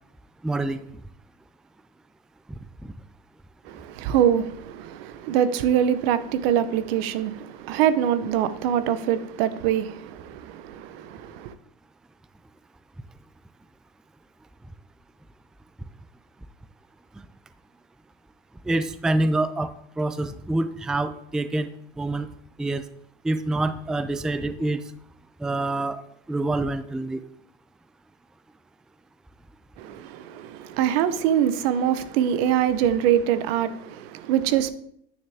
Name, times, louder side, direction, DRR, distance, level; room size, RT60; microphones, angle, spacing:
voice 1, 0.4-0.8 2.8-2.9 18.6-19.7 20.0-21.7 22.0-22.3 22.6-22.8 23.2-24.8 25.4-26.0 26.3-27.3, right 2 dB, ahead, 0.3 m, -26 dB
voice 2, 3.6-11.5 29.8-34.7, right 10 dB, 80° right, 0.8 m, -24 dB
9.7 x 6.4 x 3.5 m
supercardioid pair, 110°, 29 cm